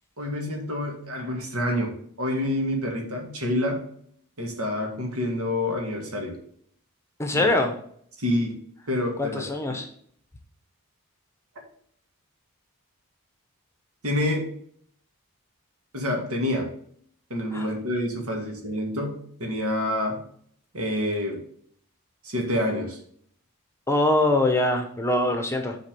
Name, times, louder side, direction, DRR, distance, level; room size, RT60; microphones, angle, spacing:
voice 1, 0.2-3.8 4.4-6.4 7.3-7.5 8.2-8.6 8.9-9.4 14.0-14.5 15.9-16.7 17.3-20.2 20.7-21.4 22.2-23.0, left 1 dB, 80° right, 2 dB, 2.2 m, -27 dB
voice 2, 7.2-7.7 9.2-9.9 17.5-17.7 23.9-25.8, left 1 dB, 10° left, 5 dB, 0.8 m, -23 dB
7.1 x 4.2 x 6.7 m, 0.62 s
head